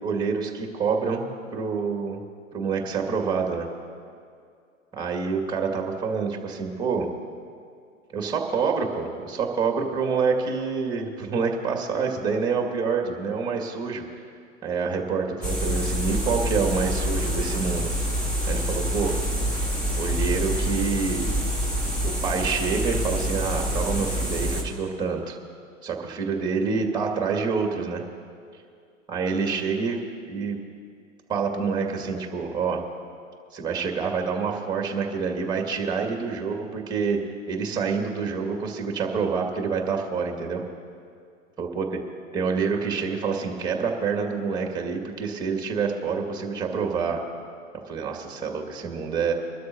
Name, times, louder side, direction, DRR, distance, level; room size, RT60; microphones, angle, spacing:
voice 1, 0.0-2.2 2.5-3.7 4.9-7.1 8.1-14.1 14.6-17.9 18.5-19.1 20.0-21.4 22.0-25.4 25.8-28.0 29.1-30.0 30.3-30.6 31.3-32.8 33.5-40.6 41.6-42.0 42.3-47.2 47.9-49.3, right 5 dB, 10° right, 2 dB, 2.0 m, -27 dB
sound 1, 15.4-24.6, equal, 15° left, 2.5 m, -26 dB
24.0 x 13.0 x 2.8 m, 2.3 s
figure-of-eight pair, 105°, 40 cm